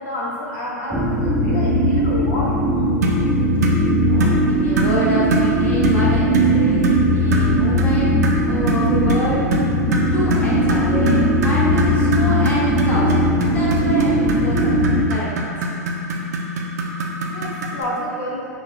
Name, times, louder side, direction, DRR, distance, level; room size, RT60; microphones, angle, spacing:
voice 1, 0.0-2.6 17.2-18.5, equal, 60° left, -6 dB, 0.8 m, -29 dB
sound 1, 0.9-15.0, equal, 5° right, 0.4 m, -18 dB
sound 2, 3.0-3.2 3.6-3.8 4.2-4.4 4.8-5.0 5.3-5.5 5.8-6.0 6.3-6.5 6.8-7.0 7.3-7.5 7.8-7.9 8.2-17.8, right 1 dB, 65° right, 0.5 m, -24 dB
voice 2, 3.2-3.5 4.0-8.2 8.5-9.4 10.1-14.8 15.1-15.5, equal, 15° left, -8 dB, 1.0 m, -27 dB
5.5 x 2.4 x 2.3 m, 2.6 s
figure-of-eight pair, 95°, 9 cm